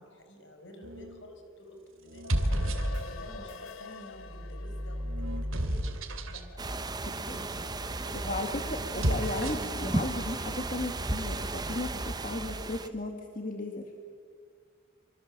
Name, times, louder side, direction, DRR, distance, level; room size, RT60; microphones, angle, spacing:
voice 1, 0.0-2.7 3.0-5.0 5.3-5.8 6.3-8.6 8.9-9.0, equal, 60° left, 4 dB, 4.9 m, -50 dB
sound 1, 0.8-1.2 2.1-3.4 4.2-6.5 8.8-9.8, equal, 80° right, 2.6 m, -32 dB
sound 2, 2.1-6.6, left 4 dB, 85° left, 1.6 m, -46 dB
sound 3, 6.6-12.9, right 2 dB, 20° right, 0.9 m, -34 dB
voice 2, 7.1-7.5 8.2-13.8, left 2 dB, 40° left, 3 dB, 1.9 m, -35 dB
25.5 x 25.5 x 7.4 m, 2.1 s
head